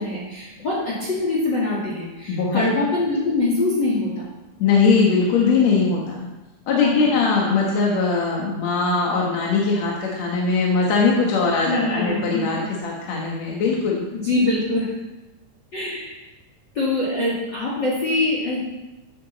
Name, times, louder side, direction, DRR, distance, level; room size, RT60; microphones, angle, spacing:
voice 1, 0.0-4.1 6.8-7.2 11.7-12.5 14.1-14.9 15.7-16.1 16.7-18.6, left 2 dB, 35° left, -5 dB, 2.6 m, -23 dB
voice 2, 2.3-2.6 4.6-6.3 6.7-14.0, left 4 dB, 60° left, -2 dB, 2.4 m, -20 dB
14.0 x 9.1 x 4.1 m, 1.0 s
omnidirectional pair, 3.9 m